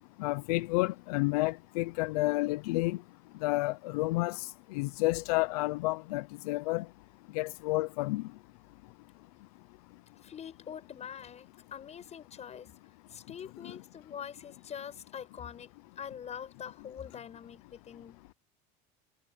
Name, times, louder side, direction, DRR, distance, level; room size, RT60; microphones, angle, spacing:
voice 1, 0.2-3.0 3.4-6.8 7.3-8.2, left 21 dB, 80° left, 0.8 m, -30 dB
voice 2, 10.2-12.7 13.1-18.4, left 8 dB, 35° left, 7.5 m, -44 dB
supercardioid pair, 105°, 19 cm